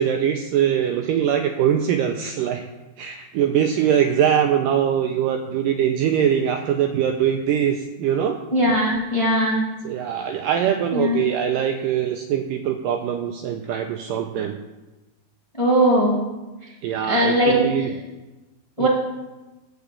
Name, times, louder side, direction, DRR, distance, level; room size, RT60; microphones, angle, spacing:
voice 1, 0.0-2.7 3.0-8.4 9.8-14.6 16.8-17.9 18.8-18.9, right 9 dB, 85° right, 5 dB, 1.9 m, -22 dB
voice 2, 8.5-9.6 10.9-11.2 15.6-16.1 17.1-17.9 18.8-18.9, equal, 15° left, -4 dB, 1.2 m, -19 dB
11.5 x 4.9 x 8.2 m, 1.1 s
omnidirectional pair, 4.4 m